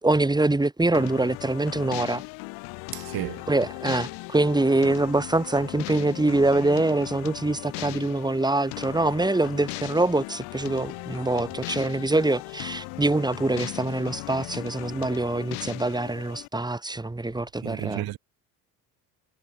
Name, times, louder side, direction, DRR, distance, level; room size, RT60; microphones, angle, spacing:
voice 1, 0.0-2.2 3.5-18.0, right 2 dB, 10° right, 4.2 m, -24 dB
sound 1, 0.9-16.5, left 31 dB, 85° left, 5.8 m, -38 dB
voice 2, 2.9-3.4 17.6-18.2, right 18 dB, 70° right, 4.2 m, -32 dB
cardioid pair, 105°, 38 cm